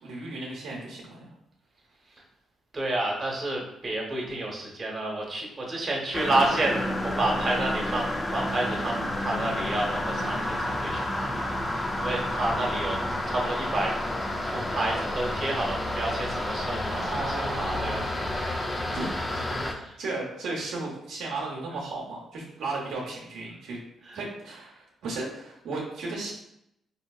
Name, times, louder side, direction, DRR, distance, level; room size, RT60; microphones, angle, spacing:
voice 1, 0.0-1.3 16.9-18.0 18.4-23.8 24.1-26.3, right 3 dB, 80° right, -3 dB, 0.8 m, -35 dB
voice 2, 2.7-14.0 14.4-19.1 19.8-19.9 24.0-24.2, right 2 dB, 40° right, -2 dB, 0.9 m, -30 dB
sound 1, 6.1-19.7, left 1 dB, 25° left, 0.5 m, -30 dB
3.8 x 2.8 x 2.3 m, 0.78 s
cardioid pair, 70°, 0 cm